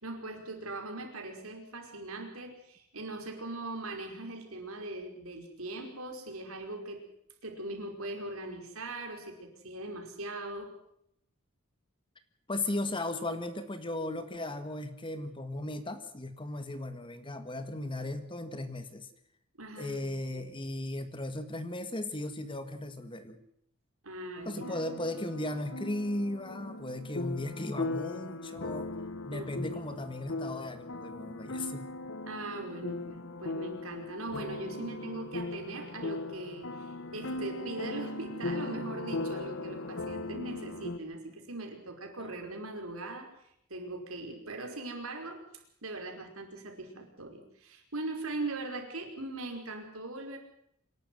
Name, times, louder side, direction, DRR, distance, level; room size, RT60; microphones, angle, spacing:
voice 1, 0.0-7.0 7.4-10.7 19.6-20.5 24.0-24.8 29.2-30.0 32.3-43.3 43.7-45.4 45.8-50.4, right 2 dB, 80° right, 3 dB, 5.1 m, -40 dB
voice 2, 12.5-19.1 19.8-23.4 24.4-28.9 29.3-31.9 42.2-42.3, left 1 dB, 25° left, 10 dB, 1.7 m, -36 dB
sound 1, 24.4-41.0, left 2 dB, 60° left, 1.2 m, -39 dB
26.0 x 12.0 x 9.3 m, 0.73 s
head